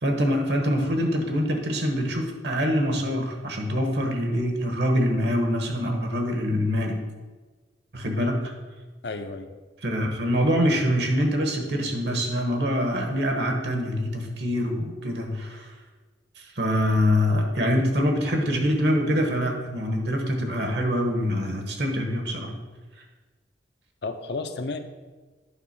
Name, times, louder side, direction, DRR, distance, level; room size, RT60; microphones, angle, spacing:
voice 1, 0.0-7.0 7.9-8.5 9.8-15.7 16.4-22.5, equal, 65° right, 2 dB, 1.3 m, -25 dB
voice 2, 9.0-9.5 24.0-24.8, left 3 dB, 65° left, 7 dB, 0.6 m, -32 dB
9.4 x 3.6 x 6.0 m, 1.3 s
head